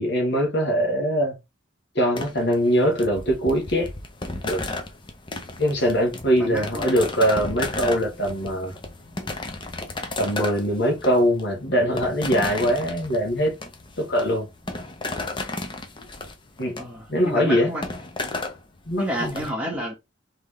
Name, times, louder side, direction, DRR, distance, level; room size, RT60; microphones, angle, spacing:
voice 1, 0.0-1.3 1.9-3.9 4.4-4.6 5.6-8.7 10.2-13.5 14.0-14.5 16.6-16.8 17.1-17.7 18.9-19.5, equal, 55° left, 1.7 m, -22 dB
sound 1, 2.2-19.5, left 2 dB, 25° left, 0.7 m, -34 dB
voice 2, 6.4-6.9 16.8-17.9 19.0-20.1, equal, 5° right, 1.8 m, -30 dB
3.7 x 3.6 x 3.3 m
head